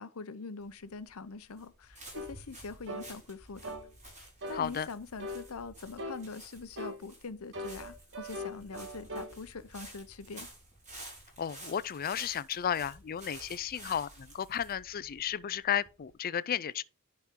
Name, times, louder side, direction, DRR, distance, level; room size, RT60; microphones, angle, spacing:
voice 1, 0.0-3.7 4.5-10.5, left 4 dB, 70° left, 0.7 m, -43 dB
sound 1, 0.6-16.1, right 1 dB, 35° right, 5.2 m, -52 dB
sound 2, 2.1-2.3 2.9-3.1 3.6-3.9 4.4-4.7 5.2-5.5 6.0-6.2 6.8-7.0 7.5-9.3, left 1 dB, 60° right, 1.5 m, -40 dB
voice 2, 4.5-4.9 11.4-16.8, left 8 dB, 40° left, 0.4 m, -33 dB
11.0 x 4.3 x 3.8 m
head